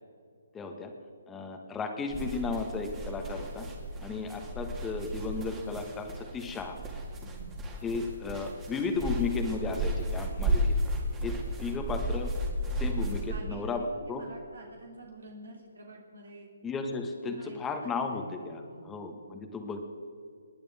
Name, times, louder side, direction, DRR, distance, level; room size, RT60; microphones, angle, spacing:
voice 1, 0.5-0.9 1.3-3.7 4.0-6.8 7.8-10.7 11.2-12.3 12.8-14.3 16.6-19.8, left 4 dB, 10° left, 4 dB, 1.5 m, -34 dB
sound 1, 2.1-13.4, equal, 15° right, 2.2 m, -33 dB
voice 2, 7.2-7.5 13.3-16.5 17.2-18.9, right 2 dB, 85° right, -1 dB, 2.8 m, -49 dB
28.0 x 10.5 x 3.6 m, 2.3 s
hypercardioid pair, 150°, 0 cm